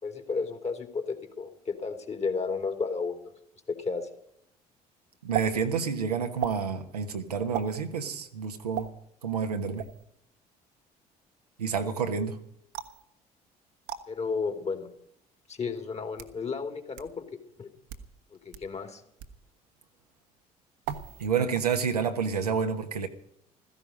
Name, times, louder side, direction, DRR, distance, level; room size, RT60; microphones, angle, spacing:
voice 1, 0.0-3.2 3.7-4.1 14.1-14.9 15.5-17.2 17.6-17.7 18.4-19.0, left 4 dB, 35° left, 6 dB, 2.9 m, -32 dB
voice 2, 5.2-8.9 9.2-9.9 11.6-12.4 21.2-23.1, right 6 dB, 85° right, 5 dB, 1.2 m, -29 dB
sound 1, 5.3-5.5 6.4-6.6 7.5-7.7 8.7-8.9 9.8-10.0 12.7-13.0 13.9-14.0 15.0-15.1 15.9-16.4 17.0-17.1 17.8-18.1 18.5-18.6 19.2-19.4 20.8-21.3 21.5-22.0, right 11 dB, 65° right, 1.3 m, -35 dB
16.0 x 14.5 x 5.3 m, 0.71 s
figure-of-eight pair, 50°, 20 cm